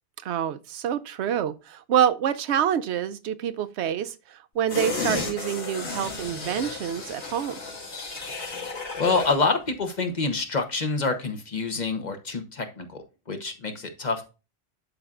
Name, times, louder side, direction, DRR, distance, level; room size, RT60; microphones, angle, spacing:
voice 1, 0.2-7.6, right 9 dB, 90° right, 0.9 m, -27 dB
sound 1, 4.7-9.4 9.8-9.9, left 4 dB, 90° left, 2.5 m, -33 dB
voice 2, 9.0-13.0 13.3-14.2, left 4 dB, 45° left, 1.1 m, -27 dB
11.5 x 4.3 x 2.4 m
omnidirectional pair, 1.1 m